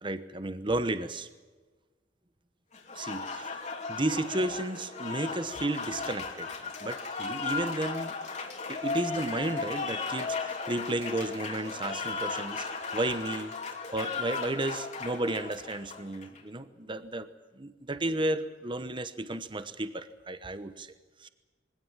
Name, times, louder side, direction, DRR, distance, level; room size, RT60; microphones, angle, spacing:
voice 1, 0.0-1.3 2.9-3.6 3.9-6.5 6.8-8.1 8.7-12.7 12.9-13.5 13.9-17.3 17.6-20.9 21.2-21.3, right 1 dB, 25° right, 12 dB, 1.0 m, -33 dB
Applause, 2.7-16.4, left 4 dB, 40° left, 3.0 m, -36 dB
23.0 x 17.0 x 9.0 m, 1.3 s
head